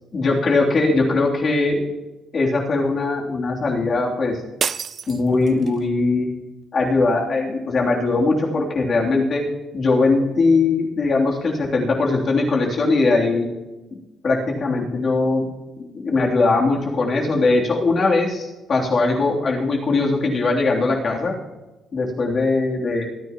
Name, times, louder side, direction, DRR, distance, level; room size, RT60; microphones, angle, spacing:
voice 1, 0.1-1.9 2.3-4.4 5.1-6.3 6.7-9.4 9.7-13.5 14.2-15.5 15.9-21.3 21.9-23.1, left 3 dB, 50° left, -2 dB, 3.0 m, -20 dB
sound 1, 4.6-5.9, right 6 dB, 50° right, 0.3 m, -28 dB
24.5 x 10.0 x 3.0 m, 1.1 s
cardioid pair, 90°, 0 cm